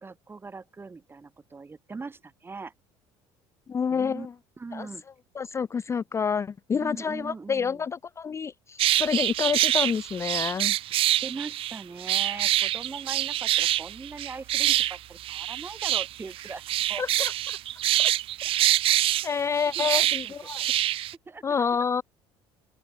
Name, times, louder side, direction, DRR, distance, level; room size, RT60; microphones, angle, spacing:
voice 1, 0.0-2.7 3.9-4.3 4.6-5.0 6.7-7.8 11.2-16.6 16.9-17.0 18.4-18.5 19.7-20.8 21.2-21.8, right 4 dB, 20° right, 1.7 m, -41 dB
voice 2, 3.7-4.3 4.7-4.9 5.4-10.8 17.0-17.6 18.0-18.1 18.5-18.6 19.2-20.6 21.4-22.0, left 6 dB, 25° left, 0.4 m, -28 dB
sound 1, 8.8-21.1, right 14 dB, 55° right, 0.6 m, -25 dB
supercardioid pair, 105°, 11 cm